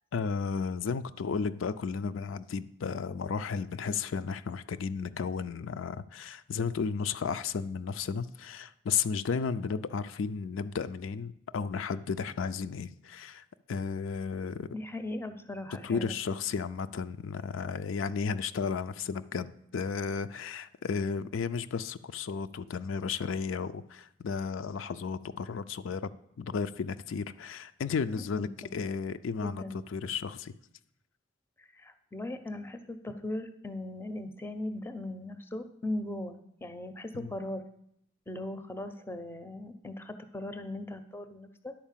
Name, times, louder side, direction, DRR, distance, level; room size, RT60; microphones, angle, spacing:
voice 1, 0.1-14.7 15.8-19.5 19.7-26.1 26.4-29.6 29.9-30.5 37.1-37.3, left 5 dB, 80° left, 11 dB, 0.4 m, -33 dB
voice 2, 14.7-16.2 28.1-28.7 29.4-29.8 31.6-37.6 38.3-41.7, left 1 dB, 10° left, 10 dB, 0.5 m, -39 dB
10.5 x 4.4 x 7.3 m, 0.73 s
head